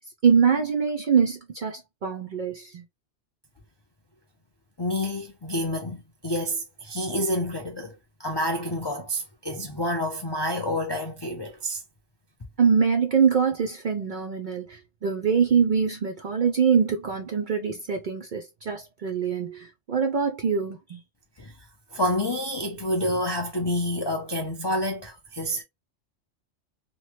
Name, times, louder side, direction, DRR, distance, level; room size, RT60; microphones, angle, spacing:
voice 1, 0.2-2.8 12.6-21.0, right 6 dB, 60° right, 0.5 m, -24 dB
voice 2, 4.8-11.8 21.4-21.5 21.9-25.6, left 1 dB, 45° left, 0.3 m, -28 dB
2.9 x 2.1 x 3.1 m
omnidirectional pair, 1.3 m